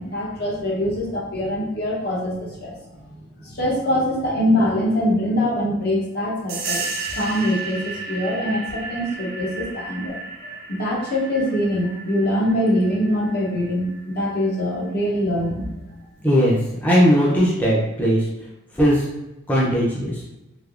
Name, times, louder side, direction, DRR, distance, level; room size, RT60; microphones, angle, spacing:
voice 1, 0.0-2.8 3.4-6.8 7.1-10.2 10.7-13.9 14.1-15.7, equal, 55° left, -3 dB, 0.9 m, -23 dB
sound 1, 6.5-14.8, right 3 dB, 55° right, 0.5 m, -33 dB
voice 2, 16.2-18.2 18.7-19.1 19.5-20.2, equal, 10° left, -6 dB, 0.5 m, -18 dB
3.3 x 2.8 x 2.4 m, 0.97 s
head